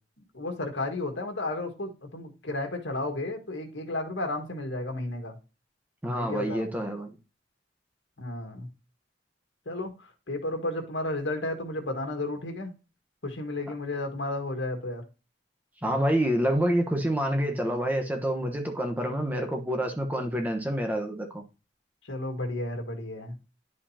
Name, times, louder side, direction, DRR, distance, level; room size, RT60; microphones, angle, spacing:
voice 1, 0.3-5.4 6.1-6.8 8.2-8.7 9.7-12.7 13.2-15.0 22.1-23.4, left 2 dB, 85° left, 1.7 m, -33 dB
voice 2, 6.0-7.1 15.8-21.4, equal, 10° right, 1.1 m, -27 dB
10.5 x 5.1 x 2.9 m
head